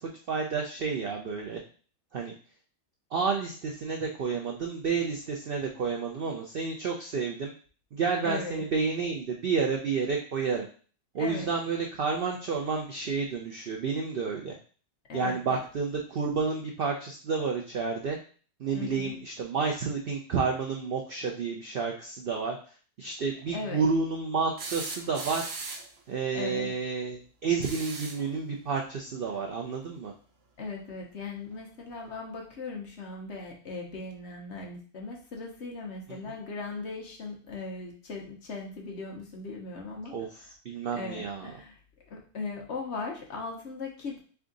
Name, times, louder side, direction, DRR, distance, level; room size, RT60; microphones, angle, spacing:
voice 1, 0.0-1.6 2.1-2.3 3.1-7.5 7.9-10.7 11.1-14.6 15.1-18.2 18.6-25.5 26.1-30.1 36.3-36.4 40.1-41.5, right 5 dB, 80° right, 1 dB, 0.5 m, -30 dB
voice 2, 8.2-8.6 11.2-11.5 15.1-15.6 18.7-19.1 23.5-23.8 26.3-26.7 30.6-40.1 40.9-44.2, left 3 dB, 50° left, 1 dB, 1.0 m, -38 dB
sound 1, 24.6-26.0 27.5-28.3 30.0-30.1 31.5-31.6, right 3 dB, 55° right, 0.8 m, -38 dB
3.6 x 3.4 x 3.8 m, 0.41 s
omnidirectional pair, 1.7 m